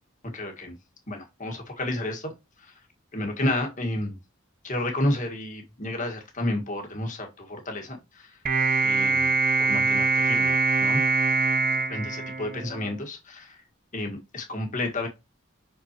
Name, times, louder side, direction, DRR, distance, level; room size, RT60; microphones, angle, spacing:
voice 1, 0.3-0.7 1.1-2.3 2.6-2.7 3.1-4.2 4.6-8.4 8.8-11.0 11.9-13.6 13.9-15.1, left 1 dB, 35° left, 1.6 m, -31 dB
sound 1, 8.5-13.0, right 4 dB, 40° right, 0.7 m, -23 dB
5.9 x 5.7 x 2.9 m
head